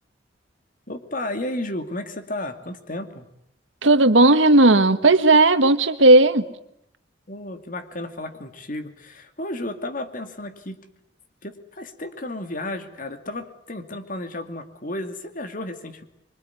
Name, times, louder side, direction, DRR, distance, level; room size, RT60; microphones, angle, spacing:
voice 1, 0.9-3.3 7.3-10.8 11.4-16.0, left 1 dB, 45° left, 8 dB, 2.6 m, -33 dB
voice 2, 3.8-6.4, right 2 dB, 85° right, 10 dB, 1.6 m, -15 dB
26.0 x 23.5 x 9.7 m, 0.77 s
head